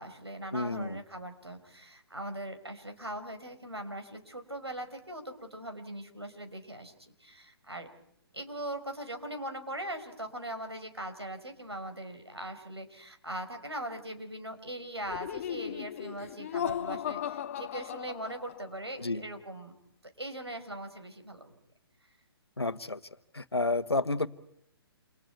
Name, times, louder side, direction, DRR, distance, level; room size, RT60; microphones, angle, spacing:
voice 1, 0.0-7.9 8.3-19.8 20.2-21.6, right 1 dB, 85° right, 6 dB, 5.3 m, -40 dB
voice 2, 0.5-1.0 19.0-19.2 22.6-23.0 23.3-24.3, left 2 dB, 80° left, 14 dB, 1.3 m, -30 dB
Laughter, 15.1-18.8, left 10 dB, 35° left, 0.9 m, -36 dB
29.5 x 28.5 x 4.6 m, 0.73 s
figure-of-eight pair, 130°, 13 cm